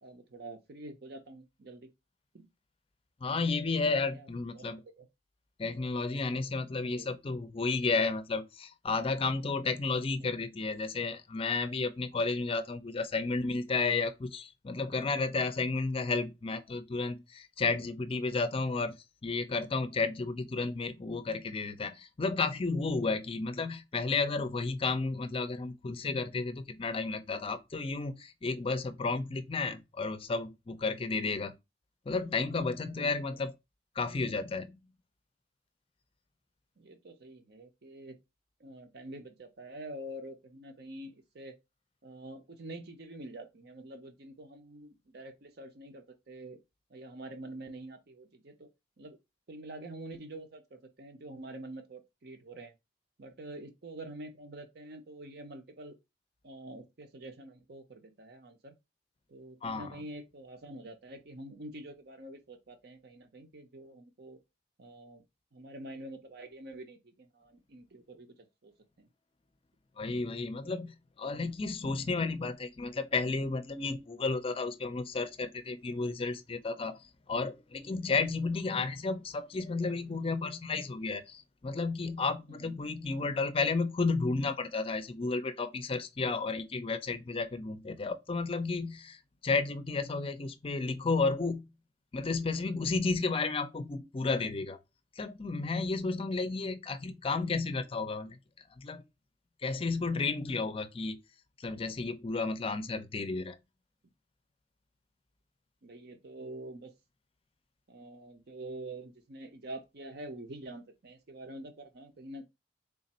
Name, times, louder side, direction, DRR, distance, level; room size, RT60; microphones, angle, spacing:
voice 1, 0.0-1.9 2.3-2.5 3.9-4.3 4.5-5.1 6.8-7.1 10.2-10.3 31.1-31.5 32.9-33.1 36.8-38.2 38.6-41.6 42.0-46.6 46.9-48.7 49.0-49.2 49.5-52.7 53.2-56.0 56.4-58.7 59.3-64.4 64.8-65.2 65.5-68.7 69.0-69.1 82.5-82.8 105.8-106.9 107.9-112.5, right 1 dB, 60° right, 0.7 m, -46 dB
voice 2, 3.2-4.8 5.6-31.5 32.1-33.5 34.0-34.8 59.6-59.9 70.0-91.7 92.1-94.8 95.2-98.4 98.8-99.0 99.6-101.2 101.6-103.6, left 3 dB, 30° left, 0.5 m, -32 dB
3.5 x 2.5 x 4.1 m
head